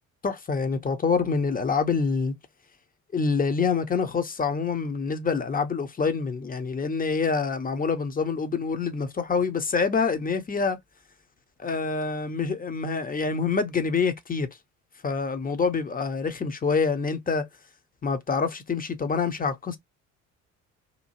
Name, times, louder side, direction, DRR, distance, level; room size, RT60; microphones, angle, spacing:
voice 1, 0.2-2.3 3.1-10.8 11.6-14.5 15.0-17.5 18.0-19.8, left 5 dB, 20° left, 0.7 m, -26 dB
2.8 x 2.4 x 2.7 m
hypercardioid pair, 55°, 42 cm